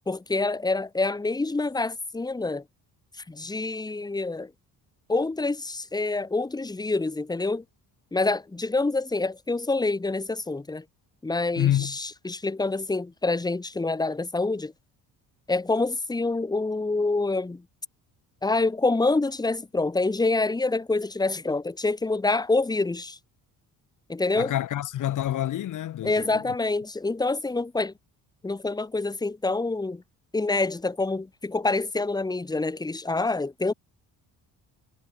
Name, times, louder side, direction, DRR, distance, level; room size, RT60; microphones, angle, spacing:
voice 1, 0.1-2.6 3.3-4.5 5.1-7.6 8.1-10.8 11.2-14.7 15.5-17.6 18.4-23.2 24.1-24.5 26.0-27.9 28.4-30.0 30.3-33.7, left 3 dB, 10° left, 2.1 m, -26 dB
voice 2, 11.6-12.0 24.4-26.4, left 12 dB, 60° left, 2.6 m, -27 dB
cardioid pair, 150°, 35 cm